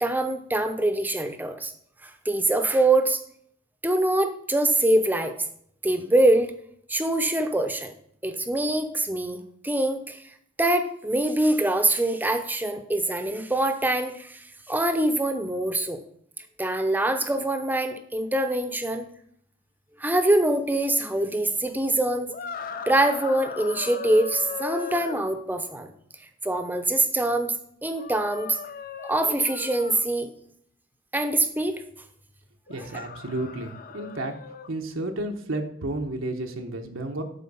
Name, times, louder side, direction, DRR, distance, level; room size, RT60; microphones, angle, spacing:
voice 1, 0.0-1.7 2.0-3.2 3.8-5.3 5.8-6.5 6.9-7.9 8.2-10.2 10.6-16.0 16.6-19.1 20.0-22.3 22.9-25.9 26.4-27.5 27.8-28.5 29.0-30.3 31.1-31.8, right 1 dB, 10° right, 8 dB, 0.8 m, -24 dB
sound 1, 22.3-25.3 27.9-30.1 32.7-34.7, left 6 dB, 45° left, 0.6 m, -38 dB
voice 2, 32.7-34.3 34.7-37.2, right 2 dB, 75° right, 3 dB, 1.0 m, -32 dB
12.0 x 4.5 x 5.4 m, 0.66 s
head